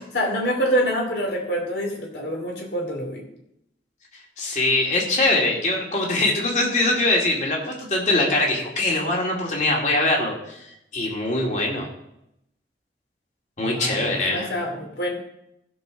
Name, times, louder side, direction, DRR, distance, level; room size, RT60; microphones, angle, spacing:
voice 1, 0.1-3.2 13.6-15.1, equal, 75° left, 1 dB, 2.8 m, -26 dB
voice 2, 4.4-11.9 13.6-14.5, left 2 dB, 45° left, -1 dB, 2.4 m, -22 dB
15.5 x 6.2 x 4.0 m, 0.82 s
head